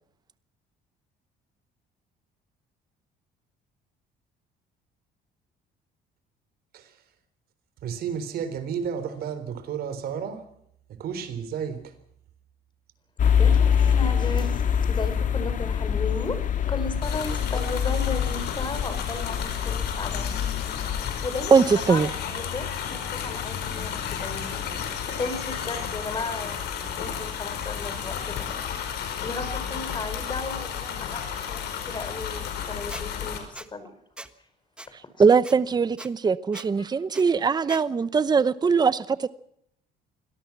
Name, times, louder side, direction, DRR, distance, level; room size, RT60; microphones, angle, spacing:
voice 1, 7.8-10.4 10.9-11.9, right 7 dB, 65° right, 3.9 m, -32 dB
sound 1, 13.2-21.3, left 8 dB, 50° left, 1.8 m, -25 dB
voice 2, 13.4-16.4 16.7-20.5 21.2-24.7 25.2-26.6 27.0-28.5 29.2-33.9, left 3 dB, 25° left, 5.2 m, -35 dB
sound 2, 17.0-33.4, left 8 dB, 75° left, 5.2 m, -33 dB
voice 3, 21.5-22.1 25.1-25.2 35.2-39.3, right 5 dB, 25° right, 0.8 m, -21 dB
Squeak, 32.9-33.0 33.5-33.7 34.2-34.3 34.8-34.9 35.4-35.5 36.0-36.1 36.5-36.7 37.1-37.2 37.7-37.8, right 1 dB, 5° right, 1.3 m, -40 dB
25.0 x 18.0 x 6.1 m
cardioid pair, 110°, 17 cm